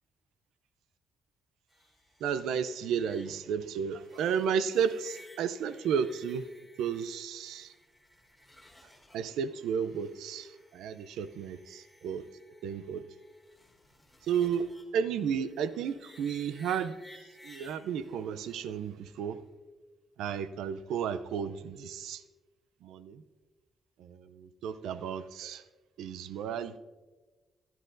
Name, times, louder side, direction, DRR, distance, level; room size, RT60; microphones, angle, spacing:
sound 1, 1.7-19.5, left 1 dB, 5° left, 3.3 m, -58 dB
voice 1, 2.2-6.5 6.8-7.7 9.1-12.2 12.6-13.0 14.2-14.7 14.9-17.0 17.4-19.4 20.2-22.2 22.8-23.2 24.0-25.6 26.0-26.8, right 7 dB, 85° right, 14 dB, 0.5 m, -33 dB
16.0 x 11.5 x 2.6 m, 1.2 s
cardioid pair, 65°, 0 cm